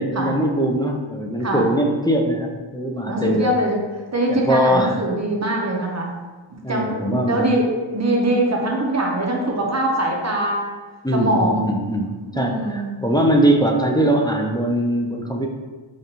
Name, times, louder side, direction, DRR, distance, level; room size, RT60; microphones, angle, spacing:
voice 1, 0.0-3.5 4.3-5.0 6.6-7.4 11.0-15.5, right 1 dB, 10° left, 0 dB, 0.3 m, -21 dB
voice 2, 3.1-3.8 4.1-6.1 6.7-10.7 11.1-11.7 12.3-12.9, right 1 dB, 35° right, -1 dB, 0.7 m, -22 dB
5.2 x 2.4 x 2.8 m, 1.3 s
wide cardioid pair, 75°, 48 cm